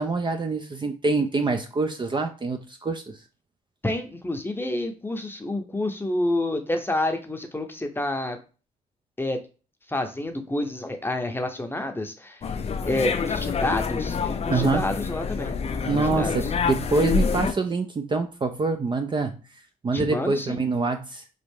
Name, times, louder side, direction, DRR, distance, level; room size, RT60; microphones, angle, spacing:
voice 1, 0.0-3.2 14.5-14.9 15.9-19.4 19.8-21.2, right 3 dB, 30° right, 6 dB, 0.4 m, -25 dB
voice 2, 3.8-8.4 9.2-9.4 9.9-12.4 12.9-15.6 15.9-16.3 19.9-20.6, left 1 dB, 15° left, 5 dB, 0.7 m, -28 dB
sound 1, 12.4-17.5, left 6 dB, 45° left, 0.5 m, -27 dB
3.1 x 2.4 x 3.4 m, 0.34 s
cardioid pair, 65°, 15 cm